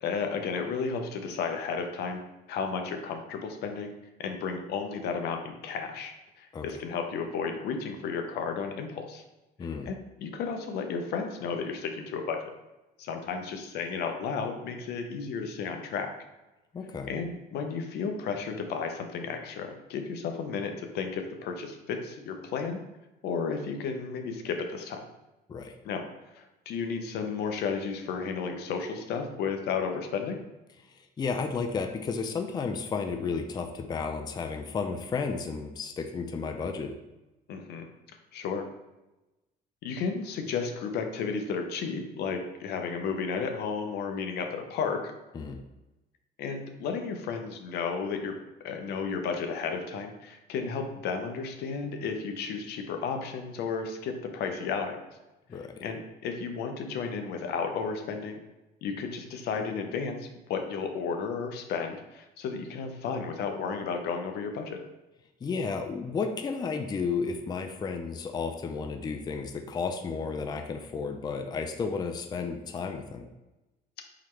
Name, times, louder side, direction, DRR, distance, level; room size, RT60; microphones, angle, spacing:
voice 1, 0.0-2.2 2.5-3.9 4.2-9.2 9.9-12.5 13.0-16.1 17.1-22.8 23.2-25.0 25.8-26.0 26.3-30.4 37.5-37.9 38.3-38.7 39.8-45.0 46.4-48.4 48.6-55.0 55.8-58.4 58.8-64.8, left 5 dB, 75° left, 5 dB, 0.7 m, -33 dB
voice 2, 9.6-9.9 16.7-17.1 25.5-25.7 30.9-36.9 45.3-45.6 55.5-55.8 65.4-73.3, left 5 dB, 25° left, 6 dB, 0.4 m, -33 dB
3.9 x 3.1 x 4.4 m, 1.0 s
cardioid pair, 110°, 17 cm